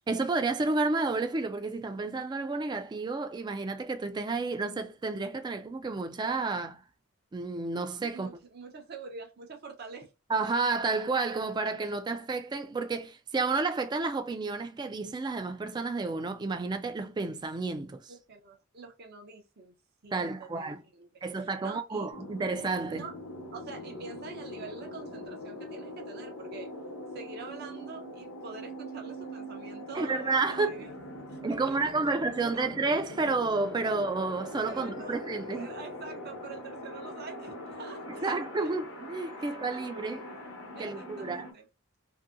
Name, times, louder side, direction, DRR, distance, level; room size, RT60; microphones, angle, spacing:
voice 1, 0.1-6.8 7.3-8.3 10.3-18.1 20.1-20.8 21.2-23.1 30.0-30.8 31.4-35.7 38.1-40.2 40.8-41.5, right 3 dB, 20° right, 0.3 m, -31 dB
voice 2, 8.1-10.1 18.1-19.7 20.0-22.1 22.9-23.1 23.5-26.7 27.1-30.9 31.3-32.7 34.7-35.2 35.5-38.7 39.4-39.9 40.7-41.7, right 4 dB, 50° right, 0.7 m, -46 dB
sound 1, 22.1-41.5, left 1 dB, 80° left, 0.8 m, -42 dB
2.7 x 2.6 x 2.4 m
head